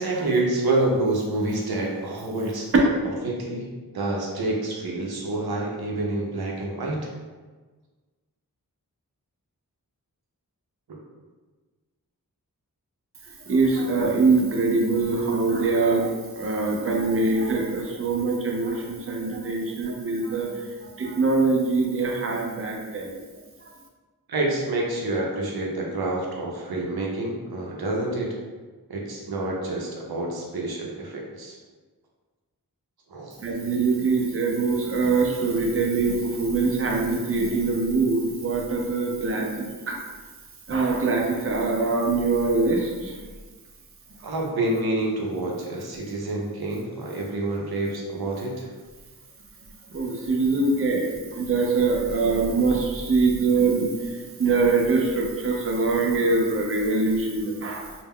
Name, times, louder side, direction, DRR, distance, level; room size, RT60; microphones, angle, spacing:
voice 1, 0.0-2.7 3.2-3.7 3.9-7.1 24.3-28.3 28.9-31.6 33.1-33.3 44.2-48.7, right 2 dB, 90° right, -2 dB, 0.6 m, -27 dB
voice 2, 13.5-23.2 33.4-40.0 40.7-43.2 49.9-53.9 54.4-57.9, right 3 dB, 40° right, 0 dB, 0.5 m, -23 dB
2.2 x 2.1 x 3.5 m, 1.3 s
wide cardioid pair, 75°, 36 cm